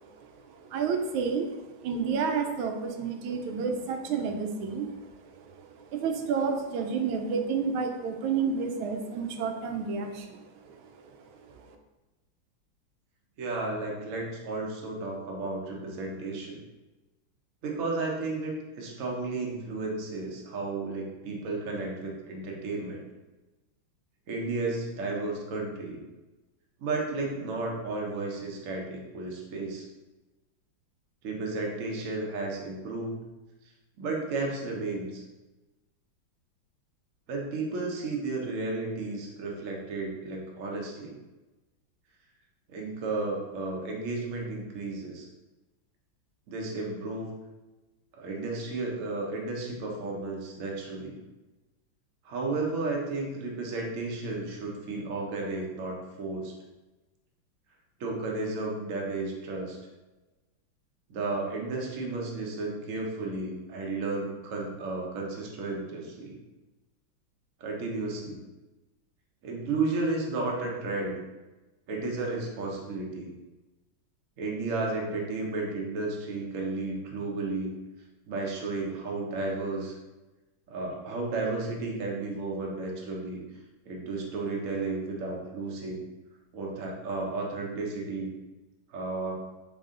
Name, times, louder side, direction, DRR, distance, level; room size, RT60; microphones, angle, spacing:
voice 1, 0.0-11.7, right 5 dB, 90° right, 5 dB, 1.4 m, -31 dB
voice 2, 13.4-16.6 17.6-23.0 24.3-26.0 26.8-29.9 31.2-33.2 33.6-33.7 34.0-35.2 37.3-41.2 42.7-45.3 46.5-47.3 48.2-51.2 52.2-56.5 58.0-59.8 61.1-66.4 67.6-68.4 69.4-71.2 71.9-73.3 74.4-77.7 78.3-79.9 80.7-83.4 83.8-86.0 86.5-88.3 88.9-89.3, right 3 dB, 55° right, -1 dB, 1.0 m, -33 dB
3.9 x 3.7 x 3.7 m, 1.1 s
omnidirectional pair, 2.2 m